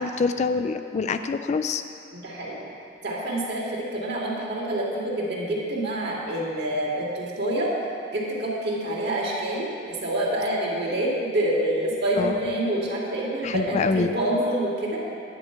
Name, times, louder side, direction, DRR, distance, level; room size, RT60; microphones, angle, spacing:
voice 1, 0.0-1.8 12.2-12.5 13.4-14.1, left 4 dB, 35° left, 9 dB, 0.3 m, -25 dB
voice 2, 2.1-2.7 3.0-7.7 8.1-15.0, right 1 dB, 60° right, -4 dB, 2.1 m, -27 dB
9.9 x 4.7 x 7.8 m, 2.5 s
head